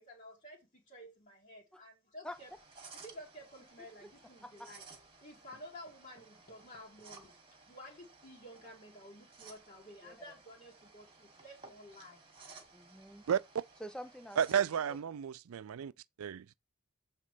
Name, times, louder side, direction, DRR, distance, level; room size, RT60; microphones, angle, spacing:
voice 1, 0.0-2.5 3.0-4.9 5.2-7.4 7.7-12.2, equal, 35° left, 2.1 m, -52 dB
sound 1, 2.3-15.0, right 4 dB, 25° right, 1.9 m, -57 dB
voice 2, 12.7-13.2 13.8-14.7, equal, 5° left, 0.5 m, -47 dB
voice 3, 14.4-15.9 16.2-16.6, right 8 dB, 75° right, 0.4 m, -32 dB
7.4 x 3.7 x 4.9 m
head